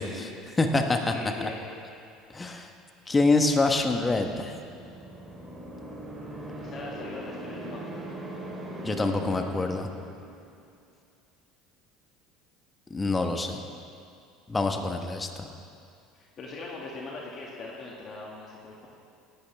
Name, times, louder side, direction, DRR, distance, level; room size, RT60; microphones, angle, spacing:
voice 1, 0.0-0.4 1.0-1.7 6.6-8.2 13.4-13.6 16.1-18.9, left 3 dB, 45° left, -3 dB, 2.0 m, -41 dB
voice 2, 0.6-1.0 1.4-1.5 2.3-2.7 3.1-4.5 8.8-9.9 12.9-13.6 14.5-15.5, left 3 dB, 20° left, 5 dB, 1.2 m, -25 dB
sound 1, 3.9-10.6, right 1 dB, 20° right, 2.8 m, -40 dB
18.0 x 11.5 x 3.5 m, 2.4 s
hypercardioid pair, 75°, 0 cm